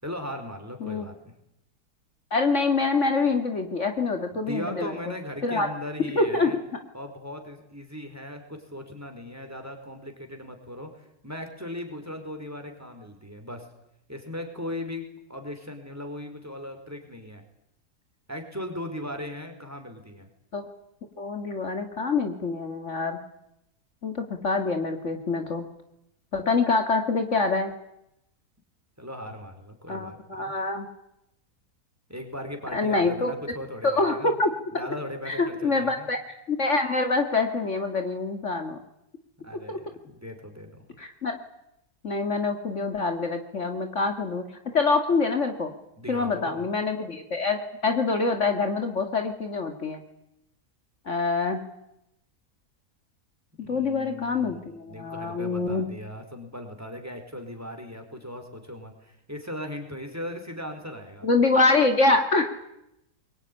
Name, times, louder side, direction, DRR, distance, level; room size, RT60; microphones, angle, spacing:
voice 1, 0.0-1.1 4.3-6.6 6.9-13.7 14.1-17.4 18.3-20.3 29.0-30.5 32.1-34.4 34.7-36.1 39.4-40.8 46.0-46.7 53.6-61.3, left 1 dB, 10° right, 4 dB, 4.6 m, -38 dB
voice 2, 2.3-5.1 5.4-5.7 6.2-6.5 20.5-20.7 21.2-23.2 24.0-25.7 26.3-27.7 29.9-30.9 32.7-33.3 33.8-34.5 35.3-36.2 36.5-38.8 39.7-39.8 41.0-41.4 42.0-44.4 44.7-45.7 46.1-50.0 51.1-51.6 53.7-55.9 61.2-62.4, left 3 dB, 50° left, 6 dB, 2.2 m, -25 dB
23.0 x 22.5 x 10.0 m, 0.82 s
omnidirectional pair, 1.6 m